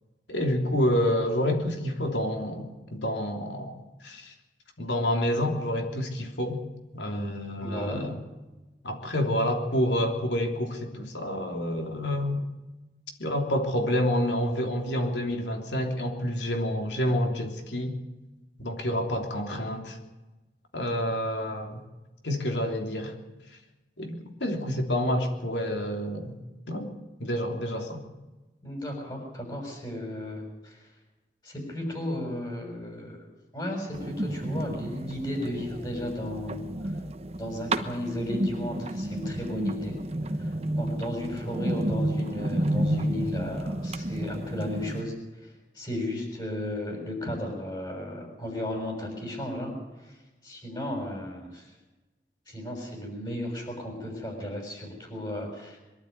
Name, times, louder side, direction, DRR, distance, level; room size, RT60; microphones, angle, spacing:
voice 1, 0.3-3.7 4.0-4.3 4.8-6.6 6.9-8.1 8.8-12.4 13.2-18.0 18.6-20.0 20.7-21.8 22.2-23.1 24.0-26.3 26.7-26.9 27.2-28.0, equal, 85° left, 3 dB, 3.2 m, -28 dB
voice 2, 7.6-8.1 28.6-30.8 31.4-33.3 33.5-36.7 37.4-40.0 40.4-49.8 50.0-50.2 50.4-51.7 52.5-55.8, left 1 dB, 25° left, 1 dB, 6.7 m, -34 dB
sound 1, 33.9-45.0, right 1 dB, 35° right, 1.1 m, -31 dB
22.5 x 12.0 x 9.5 m, 1.1 s
head